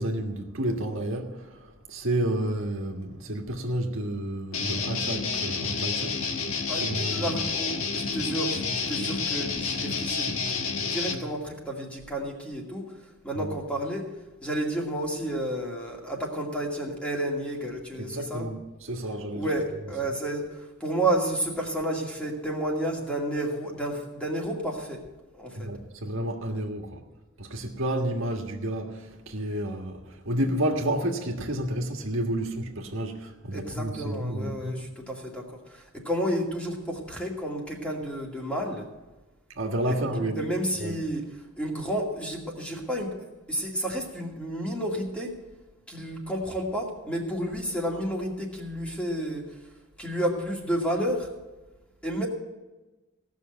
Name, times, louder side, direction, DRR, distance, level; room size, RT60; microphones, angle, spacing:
voice 1, 0.0-6.3 6.8-7.3 13.3-13.5 18.0-19.5 25.6-27.0 27.4-34.8 39.5-40.4 40.8-41.0, right 1 dB, 70° right, 1.7 m, -30 dB
Guitar, 4.5-11.2, left 5 dB, 80° left, 1.4 m, -29 dB
voice 2, 6.7-12.9 13.2-14.1 14.4-18.5 19.3-25.0 25.3-25.7 33.5-38.9 39.9-41.3 41.6-43.2 43.5-45.4 45.9-49.5 50.0-51.3 52.0-52.3, right 1 dB, 5° left, 2.3 m, -31 dB
17.0 x 6.4 x 7.9 m
head